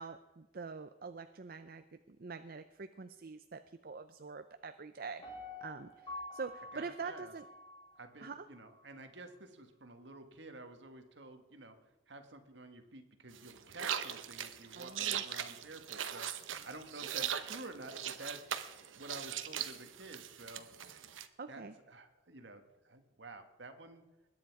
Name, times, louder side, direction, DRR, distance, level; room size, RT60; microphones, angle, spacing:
voice 1, 0.0-5.2 5.6-7.5 8.2-8.5 14.8-15.2 17.2-17.3 21.4-21.7, right 4 dB, 50° right, 10 dB, 0.5 m, -45 dB
Piano, 5.2-8.3 8.7-8.8, left 2 dB, 25° left, 4.3 m, -48 dB
voice 2, 6.7-7.3 8.0-11.8 12.1-18.4 18.9-20.7 21.5-24.0, right 2 dB, 65° right, 6 dB, 1.7 m, -50 dB
sound 1, 13.3-21.3, right 9 dB, 90° right, 1.0 m, -40 dB
21.0 x 9.6 x 4.8 m, 1.2 s
head